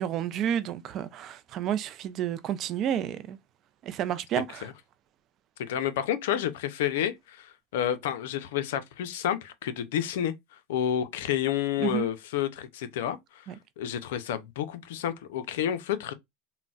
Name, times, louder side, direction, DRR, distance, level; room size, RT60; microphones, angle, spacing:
voice 1, 0.0-3.4 3.8-4.7 11.8-12.1 13.5-13.6, right 10 dB, 45° right, 0.4 m, -30 dB
voice 2, 5.6-10.3 10.7-13.5 13.8-16.1, left 10 dB, 80° left, 0.4 m, -30 dB
3.8 x 2.1 x 2.3 m
supercardioid pair, 120°, 0 cm